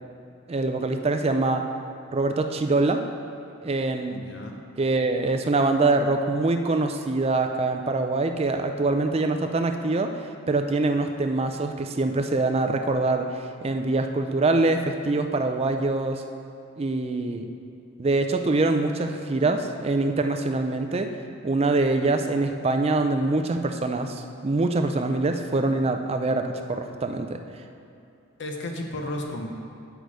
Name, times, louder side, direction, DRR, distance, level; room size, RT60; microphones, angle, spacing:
voice 1, 0.5-1.6 2.1-3.0 3.6-4.2 4.8-13.3 13.6-16.2 16.8-17.5 18.0-21.1 21.4-27.4, right 2 dB, 30° right, 6 dB, 0.4 m, -24 dB
voice 2, 4.1-4.6 28.4-29.5, left 1 dB, 55° left, 2 dB, 0.9 m, -33 dB
8.0 x 6.1 x 4.8 m, 2.7 s
head